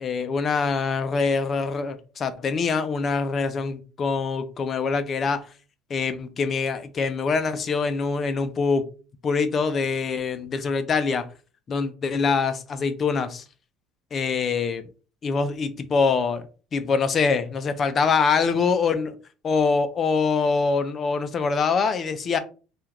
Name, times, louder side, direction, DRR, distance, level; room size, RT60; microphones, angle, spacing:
voice 1, 0.0-5.5 5.9-8.9 9.2-11.3 11.7-13.4 14.1-14.9 15.2-16.5 16.7-19.2 19.4-22.4, left 5 dB, 30° left, 0.4 m, -24 dB
3.5 x 2.3 x 2.9 m
cardioid pair, 130°, 0 cm